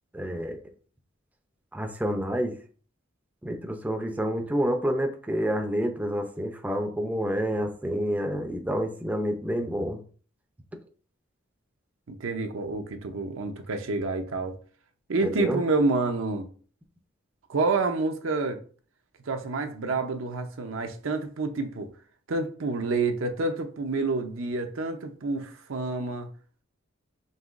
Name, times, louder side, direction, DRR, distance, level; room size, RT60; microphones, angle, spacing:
voice 1, 0.1-0.6 1.7-2.5 3.4-10.0 15.2-15.6, equal, 10° right, 0.4 m, -28 dB
voice 2, 12.1-14.5 15.1-16.5 17.5-18.6 19.3-21.9 22.3-26.3, right 3 dB, 80° right, 0.6 m, -28 dB
5.4 x 2.9 x 2.4 m
head